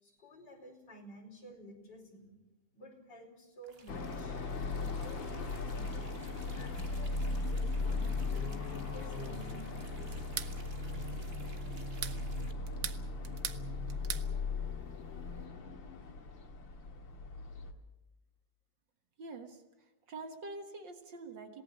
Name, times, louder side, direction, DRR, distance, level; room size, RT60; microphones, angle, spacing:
voice 1, 0.0-2.3 2.7-4.4 5.0-6.0 6.5-10.2, equal, 60° left, 1 dB, 5.4 m, -53 dB
sound 1, 3.6-12.5, right 4 dB, 35° right, 1.8 m, -57 dB
sound 2, 3.9-17.7, left 3 dB, 90° left, 2.6 m, -38 dB
sound 3, 10.1-10.5 11.8-12.2 12.7-13.6 13.9-14.3, right 8 dB, 55° right, 1.2 m, -39 dB
voice 2, 19.2-19.6 20.1-21.6, right 3 dB, 70° right, 6 dB, 2.3 m, -45 dB
27.0 x 18.0 x 6.4 m, 0.99 s
omnidirectional pair, 2.0 m